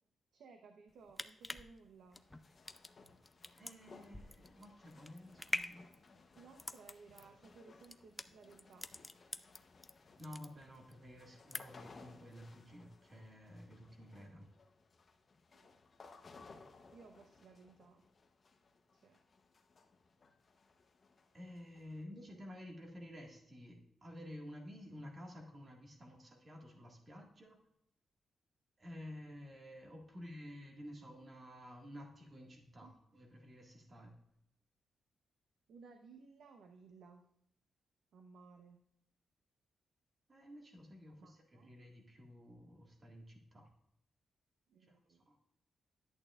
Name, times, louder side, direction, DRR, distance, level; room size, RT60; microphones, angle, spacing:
voice 1, 0.3-2.2 6.3-8.9 15.5-15.7 16.9-18.0 18.9-19.2 32.8-32.9 35.7-37.3 38.1-38.8 41.2-41.7 44.7-45.3, right 4 dB, 80° right, 5 dB, 0.8 m, -59 dB
sound 1, 0.9-9.9 10.2-11.0 11.3-11.9 12.3-12.4, left 2 dB, 10° left, 0.4 m, -45 dB
sound 2, 2.2-22.0, left 4 dB, 35° left, 0.8 m, -62 dB
voice 2, 3.5-5.9 10.2-14.5 21.3-27.6 28.8-34.1 40.3-43.7 44.8-45.4, left 1 dB, 30° right, 1 dB, 1.8 m, -52 dB
11.0 x 8.6 x 2.4 m, 0.78 s
wide cardioid pair, 155°, 0 cm